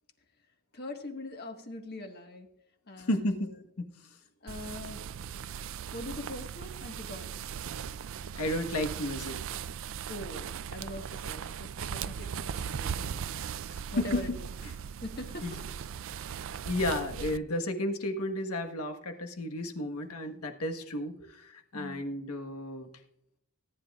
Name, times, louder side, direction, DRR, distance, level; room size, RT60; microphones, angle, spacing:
voice 1, 0.7-2.5 2.9-3.4 4.4-5.0 5.9-7.3 10.1-13.1 13.9-14.3 15.0-15.7 21.2-21.3 21.7-22.1, left 1 dB, 45° left, 4 dB, 1.6 m, -42 dB
voice 2, 3.0-3.5 3.8-4.0 8.4-9.4 14.0-14.2 15.4-15.6 16.7-22.9, left 1 dB, 85° left, 5 dB, 1.4 m, -32 dB
sound 1, 4.5-17.4, right 7 dB, 60° right, 0.4 m, -38 dB
18.5 x 10.5 x 2.4 m, 0.78 s
head